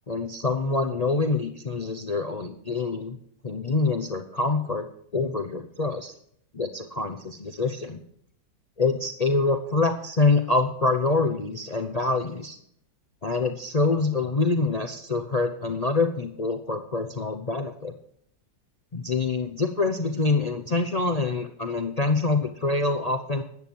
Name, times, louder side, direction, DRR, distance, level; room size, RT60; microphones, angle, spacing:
voice 1, 0.1-3.2 3.4-4.9 5.1-6.1 6.5-8.0 8.8-12.6 13.2-17.9 18.9-23.4, left 3 dB, 60° left, 7 dB, 0.4 m, -25 dB
14.0 x 10.0 x 4.6 m, 0.66 s
omnidirectional pair, 1.9 m